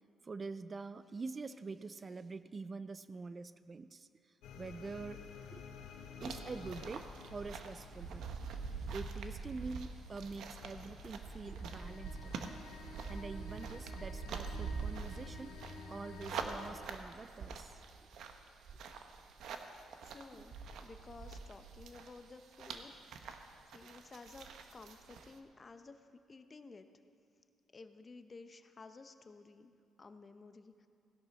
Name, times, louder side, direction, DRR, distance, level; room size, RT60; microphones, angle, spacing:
voice 1, 0.2-5.2 5.5-5.6 6.2-8.3 8.8-12.6 13.1-15.6 15.9-17.8, right 4 dB, 35° right, 13 dB, 0.4 m, -46 dB
sound 1, 4.4-16.7, left 4 dB, 90° left, 1.2 m, -52 dB
sound 2, 6.2-22.3 22.5-25.4, right 5 dB, 75° right, 0.9 m, -45 dB
voice 2, 20.0-23.4 23.7-26.9 27.7-30.9, left 3 dB, 35° left, 9 dB, 0.8 m, -54 dB
16.5 x 11.0 x 4.2 m, 2.4 s
cardioid pair, 90°, 0 cm